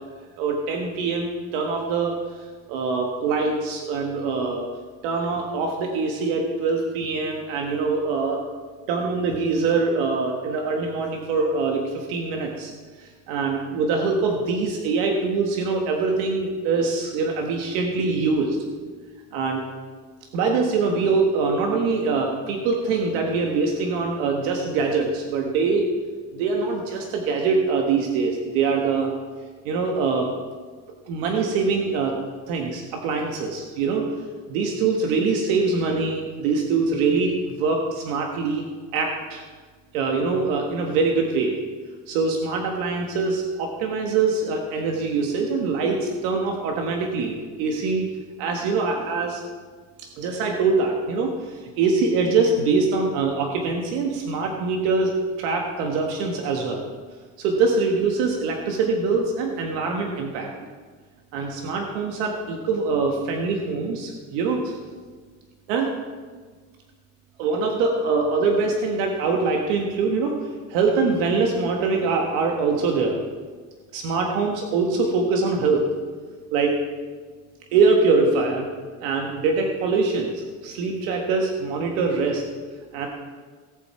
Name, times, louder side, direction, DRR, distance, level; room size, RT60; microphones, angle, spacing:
voice 1, 0.4-2.1 2.7-4.7 5.0-8.4 8.9-12.7 13.0-18.6 19.3-19.6 20.3-25.9 26.3-29.1 29.6-30.3 31.1-32.1 32.5-34.1 34.5-38.7 38.9-39.4 39.9-41.6 42.1-48.1 48.4-49.4 50.2-56.8 57.4-60.5 61.3-64.8 65.7-65.9 67.4-73.2 73.9-75.9 76.5-76.7 77.7-78.7 79.0-82.4 82.9-83.1, right 4 dB, 90° right, 1 dB, 1.7 m, -23 dB
18.0 x 7.6 x 4.5 m, 1.5 s
cardioid pair, 135°, 40 cm